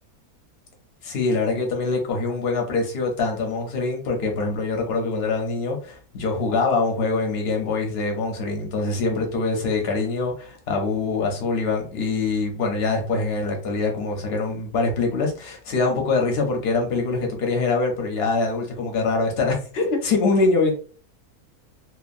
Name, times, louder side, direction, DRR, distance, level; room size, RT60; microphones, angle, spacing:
voice 1, 1.0-20.7, left 3 dB, 50° left, 0.8 m, -24 dB
2.8 x 2.3 x 2.4 m
omnidirectional pair, 1.6 m